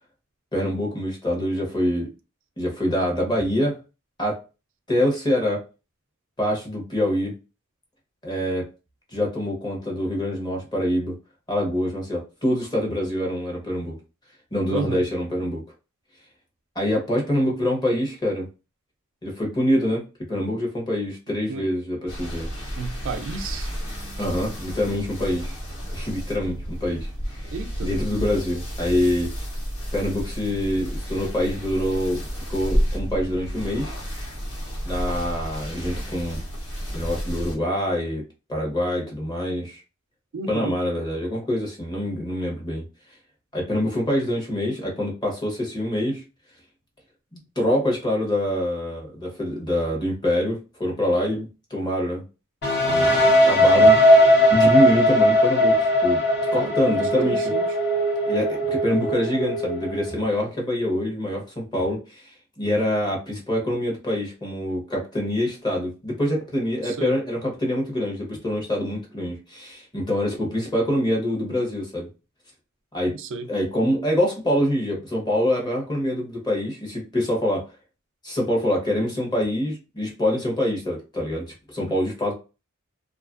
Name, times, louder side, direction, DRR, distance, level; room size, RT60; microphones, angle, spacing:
voice 1, 0.5-2.1 2.6-3.8 4.2-4.4 4.9-5.6 6.4-7.3 8.2-8.7 9.1-11.1 11.5-14.0 14.5-15.6 16.7-18.5 19.2-20.0 20.3-22.5 24.2-25.5 25.9-27.5 27.8-29.3 29.9-33.9 34.8-36.4 36.9-38.2 38.5-39.8 40.5-42.8 43.5-46.2 47.6-52.2 52.9-54.0 54.5-56.2 56.5-57.5 58.3-62.3 62.6-72.1 72.9-73.2 73.5-77.7 78.2-82.3, left 1 dB, 20° left, 0.9 m, -25 dB
voice 2, 14.7-15.0 21.5-21.6 22.8-23.7 27.5-27.9 40.3-40.7 56.6-57.7 66.8-67.1 73.2-73.5, right 4 dB, 60° right, 0.4 m, -32 dB
sound 1, 22.1-37.5, equal, 85° left, 1.5 m, -31 dB
sound 2, 52.6-60.4, equal, 50° left, 1.1 m, -19 dB
2.7 x 2.4 x 2.4 m
head